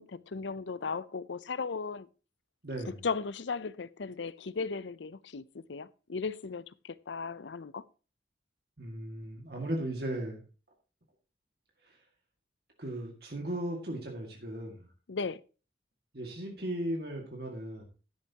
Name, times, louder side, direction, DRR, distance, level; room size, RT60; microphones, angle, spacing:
voice 1, 0.0-2.1 2.9-7.8 15.1-15.4, left 4 dB, 90° left, 0.6 m, -36 dB
voice 2, 2.6-3.0 8.8-10.4 11.8-12.0 12.8-14.9 16.1-17.8, right 1 dB, 60° right, 2.1 m, -37 dB
12.0 x 10.0 x 2.9 m
head